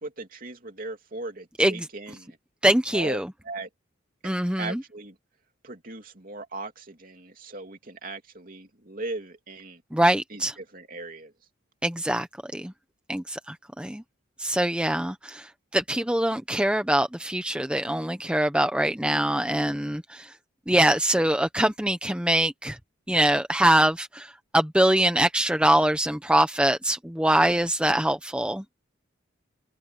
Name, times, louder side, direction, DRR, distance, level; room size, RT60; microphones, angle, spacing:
voice 1, 0.0-2.4 2.9-3.2 3.4-3.7 4.2-5.2 5.6-9.8 10.3-11.3, right 2 dB, 45° right, 3.1 m, -38 dB
voice 2, 2.6-3.3 4.2-4.8 9.9-10.5 11.8-12.3 12.5-12.7 13.1-14.0 14.4-20.3 20.7-22.8 23.1-28.6, right 1 dB, 5° right, 0.9 m, -23 dB
head